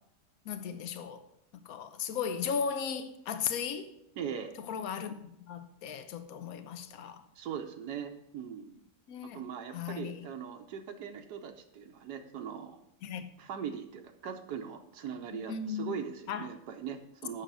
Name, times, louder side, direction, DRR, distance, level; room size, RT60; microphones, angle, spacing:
voice 1, 0.4-1.2 1.6-3.9 4.7-7.2 9.1-9.4 9.7-10.3 13.0-13.3 15.3-15.9 16.3-16.5, left 7 dB, 65° left, 1.2 m, -36 dB
voice 2, 4.2-4.5 7.4-8.8 9.3-12.8 13.4-17.4, right 7 dB, 90° right, 1.4 m, -40 dB
8.0 x 6.6 x 6.2 m
omnidirectional pair, 1.7 m